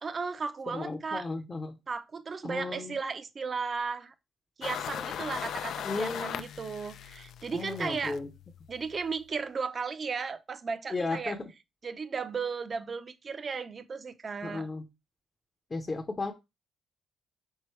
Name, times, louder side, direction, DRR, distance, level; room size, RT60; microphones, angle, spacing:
voice 1, 0.0-1.3 1.9-4.1 4.6-8.2 8.7-11.4 11.8-14.7, right 5 dB, 40° right, 0.5 m, -35 dB
voice 2, 0.7-1.8 2.4-3.0 5.8-6.4 7.5-8.3 10.9-11.5 14.4-14.8 15.7-16.3, left 3 dB, 30° left, 0.7 m, -34 dB
sound 1, 4.6-9.1, left 9 dB, 70° left, 0.3 m, -39 dB
4.5 x 3.7 x 3.2 m
cardioid pair, 90°, 0 cm